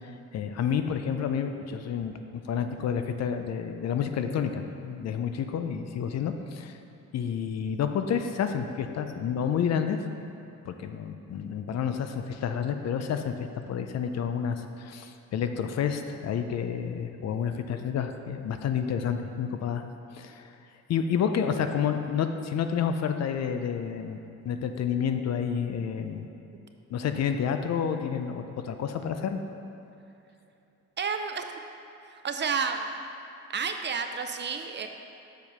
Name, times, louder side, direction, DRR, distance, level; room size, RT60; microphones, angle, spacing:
voice 1, 0.3-6.8 7.1-10.0 10.6-13.3 13.7-19.8 20.1-20.5 20.9-24.2 24.4-26.3 26.9-29.4, left 7 dB, 60° left, 7 dB, 0.6 m, -29 dB
voice 2, 31.0-31.5 32.1-32.9 33.5-34.9, right 5 dB, 35° right, 6 dB, 0.5 m, -30 dB
7.0 x 4.7 x 5.4 m, 2.8 s
cardioid pair, 90°, 30 cm